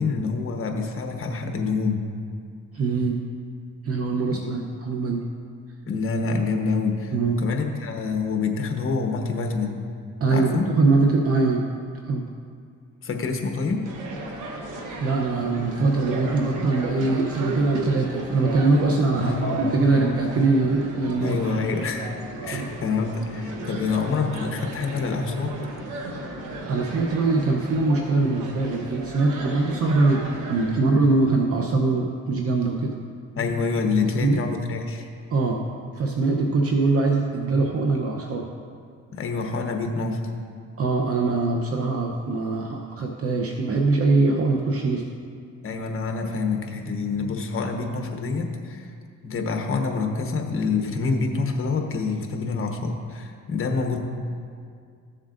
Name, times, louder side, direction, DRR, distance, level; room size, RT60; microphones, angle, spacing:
voice 1, 0.0-2.1 4.3-4.6 5.9-9.8 10.3-10.7 13.0-13.9 19.2-19.7 21.2-22.1 22.4-25.6 33.3-35.1 39.1-40.2 45.6-48.9 49.2-54.0, left 4 dB, 45° left, 3 dB, 1.1 m, -27 dB
voice 2, 2.7-3.2 3.8-5.2 7.1-7.4 10.2-11.6 12.0-12.2 15.0-21.4 22.5-22.7 23.9-24.0 26.7-32.9 34.2-34.4 35.3-35.6 35.9-38.4 40.8-45.0, right 3 dB, 50° right, 1 dB, 0.8 m, -22 dB
sound 1, 13.6-27.5, left 5 dB, 10° left, 0.8 m, -49 dB
sound 2, 13.8-30.8, right 2 dB, 80° right, 1.2 m, -34 dB
14.0 x 7.3 x 2.6 m, 2.2 s
cardioid pair, 90°, 30 cm